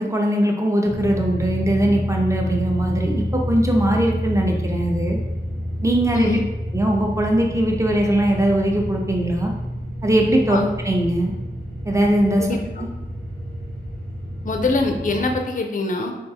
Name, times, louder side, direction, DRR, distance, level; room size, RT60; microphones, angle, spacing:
voice 1, 0.0-5.2 5.8-6.4 6.7-9.5 10.0-10.6 10.8-11.3 11.9-12.4, right 1 dB, 15° right, 0 dB, 0.6 m, -20 dB
sound 1, 0.8-15.3, equal, 55° right, 1.1 m, -29 dB
voice 2, 6.1-6.4 10.5-10.7 12.4-12.8 14.4-16.1, left 3 dB, 45° left, 3 dB, 0.4 m, -24 dB
3.5 x 2.4 x 2.7 m, 0.99 s
wide cardioid pair, 45°, 19 cm